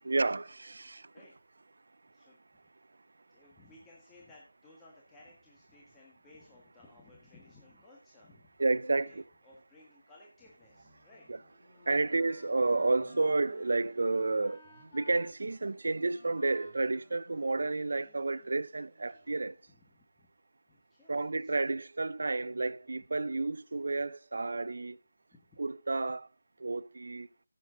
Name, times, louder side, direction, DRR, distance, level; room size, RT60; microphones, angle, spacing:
voice 1, 0.0-1.1 8.6-9.2 11.9-14.6 14.9-19.6 21.1-25.0 25.6-26.3 26.6-27.3, right 3 dB, 70° right, 0.6 m, -31 dB
voice 2, 3.3-8.6 9.0-11.3 19.7-20.0 20.7-21.5 25.3-25.6, left 2 dB, 10° left, 1.7 m, -59 dB
sound 1, 10.6-12.6 12.9-14.4 14.6-16.4 16.6-19.8, right 2 dB, 25° right, 3.5 m, -65 dB
Wind instrument woodwind instrument, 11.1-18.2, left 2 dB, 30° left, 3.8 m, -58 dB
15.0 x 7.5 x 3.8 m
figure-of-eight pair, 165°, 0 cm